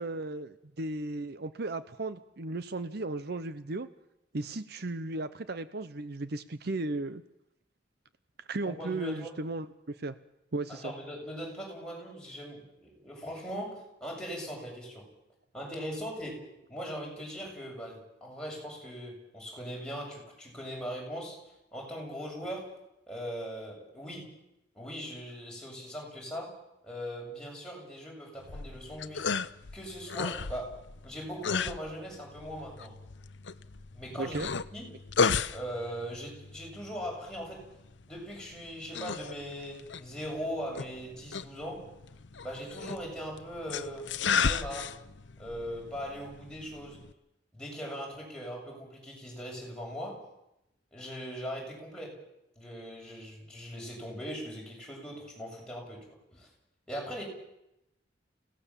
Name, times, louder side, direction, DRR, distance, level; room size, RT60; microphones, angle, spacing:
voice 1, 0.0-3.9 4.3-7.2 8.5-10.1 10.5-10.9 34.2-34.5, right 2 dB, 55° right, 12 dB, 0.8 m, -35 dB
voice 2, 8.6-9.3 10.7-15.0 15.5-16.4 16.7-21.4 21.7-22.7 23.1-24.3 24.7-26.6 26.8-29.3 29.7-30.7 31.0-32.9 33.9-34.4 34.7-34.9 35.5-37.6 38.1-41.9 42.4-44.1 44.4-45.0 45.4-47.0 47.5-50.3 50.9-52.2 52.6-56.5 56.9-57.2, equal, 5° left, -3 dB, 7.4 m, -40 dB
sound 1, 28.4-47.1, left 5 dB, 70° left, 0.8 m, -35 dB
28.5 x 17.5 x 7.4 m, 0.88 s
head